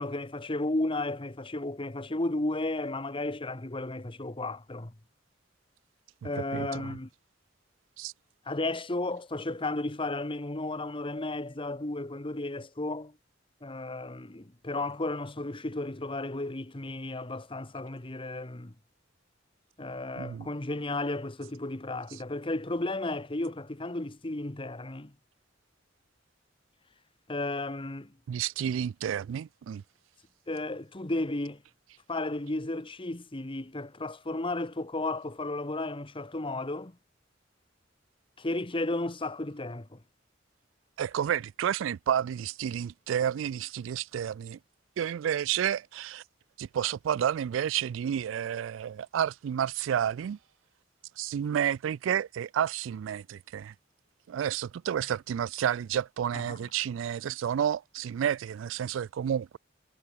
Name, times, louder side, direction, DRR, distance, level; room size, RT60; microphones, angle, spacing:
voice 1, 0.0-4.9 6.2-7.1 8.5-13.1 13.6-18.7 19.8-25.1 27.3-28.1 30.5-31.6 32.1-37.0 38.4-40.0 56.3-56.6, left 2 dB, 25° left, 1.3 m, -33 dB
voice 2, 6.2-6.9 8.0-8.1 20.2-20.5 28.3-29.8 41.0-44.6 45.0-46.2 46.6-50.4 51.2-53.7 54.3-59.6, right 9 dB, 80° right, 0.3 m, -30 dB
head